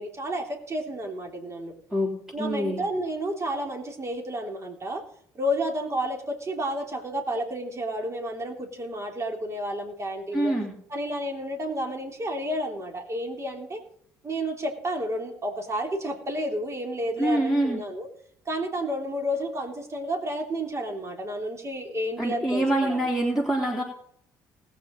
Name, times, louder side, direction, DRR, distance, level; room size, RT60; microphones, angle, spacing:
voice 1, 0.0-1.7 2.3-5.0 5.3-10.5 10.9-13.8 14.2-18.1 18.4-23.0, equal, 30° right, 2 dB, 3.2 m, -31 dB
voice 2, 2.4-2.8 10.3-10.7 17.2-17.8 22.2-23.8, right 1 dB, 5° right, -1 dB, 3.2 m, -25 dB
20.0 x 8.3 x 3.9 m, 0.65 s
hypercardioid pair, 55°, 10 cm